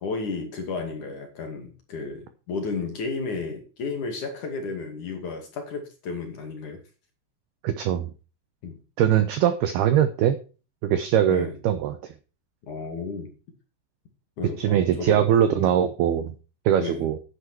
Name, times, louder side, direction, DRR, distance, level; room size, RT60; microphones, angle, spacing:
voice 1, 0.0-6.8 8.6-8.8 11.3-11.6 12.7-13.3 14.4-15.3 15.6-15.7 16.8-17.0, left 4 dB, 45° left, 4 dB, 3.2 m, -33 dB
voice 2, 7.6-8.1 9.0-10.4 10.8-12.1 14.6-16.3 16.7-17.2, right 10 dB, 85° right, 11 dB, 2.2 m, -22 dB
10.5 x 9.8 x 4.5 m, 0.35 s
omnidirectional pair, 5.7 m